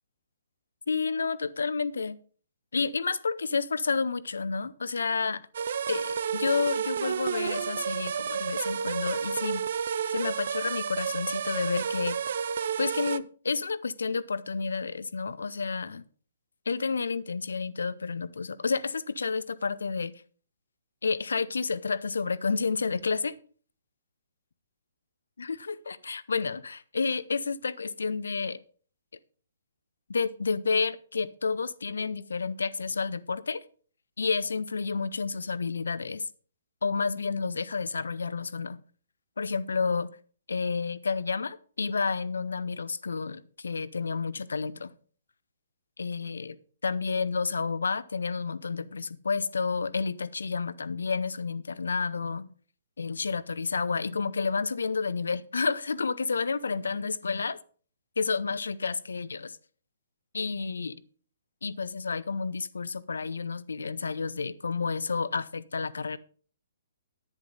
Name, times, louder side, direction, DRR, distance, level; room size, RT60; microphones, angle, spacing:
voice 1, 0.9-2.2 2.7-5.4 5.9-9.6 10.1-12.2 12.8-16.0 16.7-20.2 21.0-23.3 25.4-28.6 30.1-33.6 34.2-36.2 36.8-38.8 39.4-40.1 40.5-44.9 46.0-46.6 46.8-52.5 53.0-57.6 58.2-59.6 60.3-61.0 61.6-66.2, left 4 dB, 65° left, 0.7 m, -30 dB
sound 1, 5.5-13.2, right 7 dB, 55° right, 0.4 m, -31 dB
11.0 x 9.9 x 3.9 m
figure-of-eight pair, 125°, 0 cm